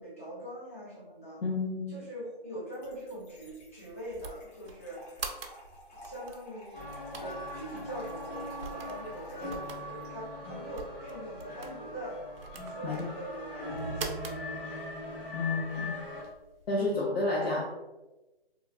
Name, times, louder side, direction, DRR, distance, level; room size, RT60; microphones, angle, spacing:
voice 1, 0.0-1.4 1.9-5.1 6.0-12.2 12.6-14.8, right 1 dB, 15° left, -8 dB, 0.4 m, -43 dB
voice 2, 1.4-2.0 12.8-13.1 15.3-16.0 16.7-17.6, left 2 dB, 80° left, -4 dB, 0.8 m, -30 dB
Trickle dribble / Fill (with liquid), 2.7-10.1, left 1 dB, 45° left, 1.0 m, -50 dB
sound 1, 2.8-16.7, right 5 dB, 65° right, 0.5 m, -47 dB
sound 2, 6.7-16.2, left 1 dB, 65° left, 1.4 m, -40 dB
3.0 x 2.3 x 2.4 m, 1.1 s
hypercardioid pair, 155°, 30 cm